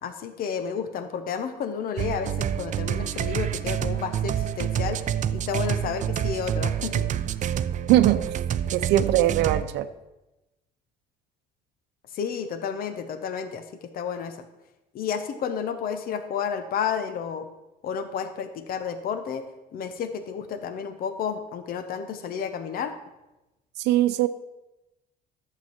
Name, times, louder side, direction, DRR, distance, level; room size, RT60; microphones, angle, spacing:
voice 1, 0.0-7.1 12.1-14.4 14.9-17.5 17.8-19.4 19.7-22.9, left 7 dB, 60° left, 9 dB, 0.9 m, -31 dB
sound 1, 2.0-9.6, right 9 dB, 45° right, 0.5 m, -27 dB
voice 2, 7.9-8.2 8.7-9.9 23.8-24.3, right 13 dB, 85° right, 11 dB, 0.7 m, -21 dB
11.5 x 7.7 x 4.5 m, 1.0 s
cardioid pair, 110°, 17 cm